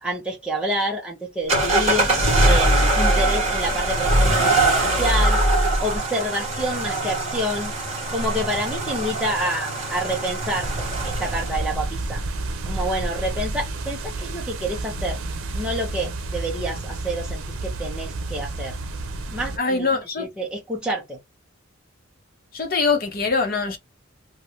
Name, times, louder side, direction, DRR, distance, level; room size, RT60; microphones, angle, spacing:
voice 1, 0.0-5.4 5.8-7.7 8.1-12.2 12.7-15.2 15.5-18.8 19.3-19.9 20.2-21.2, equal, 5° right, 0.8 m, -28 dB
sound 1, 1.5-11.7, right 1 dB, 30° right, 1.5 m, -22 dB
sound 2, 10.6-19.6, right 2 dB, 90° right, 0.7 m, -30 dB
voice 2, 19.6-20.3 22.5-23.8, left 4 dB, 45° left, 0.9 m, -23 dB
2.8 x 2.6 x 3.2 m
head